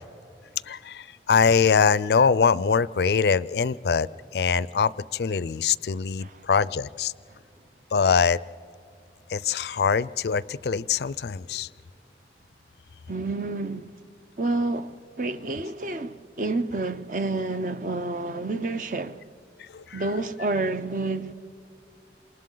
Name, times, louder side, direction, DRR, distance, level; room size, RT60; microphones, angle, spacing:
voice 1, 0.7-4.1 4.3-7.1 7.9-8.4 9.3-11.7 19.7-20.0, left 6 dB, 65° left, 0.4 m, -23 dB
voice 2, 13.1-13.9 14.4-19.2 19.9-21.4, right 2 dB, 45° right, 0.6 m, -29 dB
28.5 x 27.0 x 3.9 m
head